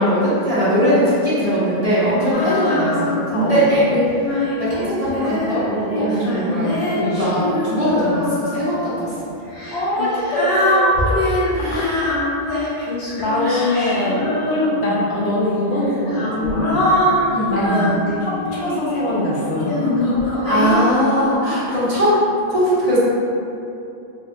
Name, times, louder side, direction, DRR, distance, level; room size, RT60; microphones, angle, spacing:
voice 1, 0.0-3.8 4.1-6.8 7.1-9.1 11.5-12.1 13.4-13.9 14.5-15.0 17.3-17.9 20.4-22.2 22.5-23.0, equal, 35° right, -11 dB, 1.2 m, -20 dB
voice 2, 2.2-3.6 7.0-7.2 9.7-11.2 11.6-12.1 12.8-16.9 17.5-17.9 18.2-20.4 21.7-21.8, left 1 dB, 80° left, -5 dB, 1.0 m, -23 dB
Female singing, 2.3-3.4 3.9-8.7 9.5-15.0 15.8-19.0 19.6-20.8, left 1 dB, 60° left, 1.0 m, -22 dB
4.1 x 2.7 x 2.5 m, 2.7 s
omnidirectional pair, 1.1 m